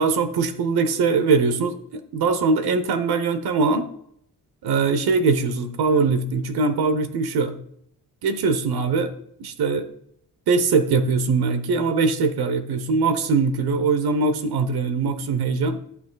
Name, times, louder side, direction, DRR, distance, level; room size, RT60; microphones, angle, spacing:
voice 1, 0.0-1.8 2.1-3.9 4.6-7.5 8.2-9.1 9.4-9.9 10.5-15.8, right 4 dB, 85° right, 10 dB, 1.0 m, -21 dB
14.0 x 6.2 x 2.3 m, 0.71 s
cardioid pair, 90°, 37 cm